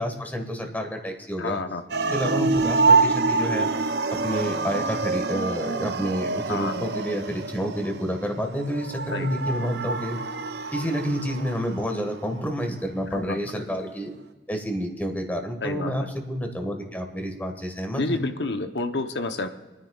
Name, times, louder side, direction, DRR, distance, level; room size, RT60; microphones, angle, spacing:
voice 1, 0.0-1.6 2.1-3.7 4.1-10.2 10.7-14.1 14.5-18.2, equal, 10° left, 4 dB, 1.5 m, -29 dB
voice 2, 1.4-1.8 6.5-6.9 9.1-9.3 13.1-13.4 15.6-16.1 17.9-19.5, left 3 dB, 75° left, 7 dB, 0.9 m, -29 dB
sound 1, 1.9-12.0, right 3 dB, 70° right, 0.6 m, -26 dB
29.0 x 10.0 x 2.4 m, 1.2 s
head